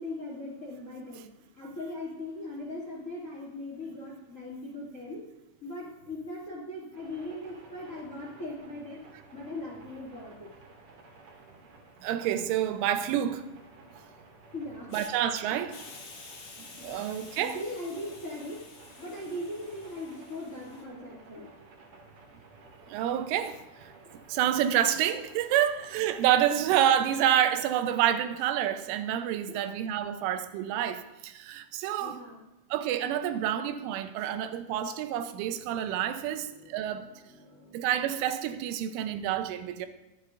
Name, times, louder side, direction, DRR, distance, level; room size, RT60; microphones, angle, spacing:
voice 1, 0.0-5.2 5.6-9.0 9.3-10.5 14.5-14.9 16.8-17.1 17.3-18.6 19.0-21.5 29.5-29.7 32.0-32.4 35.4-35.5 36.3-37.9, left 1 dB, 30° left, 1.4 m, -40 dB
sound 1, 6.9-26.1, right 3 dB, 50° right, 3.4 m, -54 dB
voice 2, 12.0-13.5 14.9-15.8 16.6-17.6 22.9-23.6 24.3-32.2 32.7-37.1 37.7-39.9, right 10 dB, 85° right, 3.3 m, -28 dB
Hiss, 14.9-15.1 15.7-20.8, left 4 dB, 85° left, 1.1 m, -50 dB
23.0 x 9.3 x 2.6 m
omnidirectional pair, 5.5 m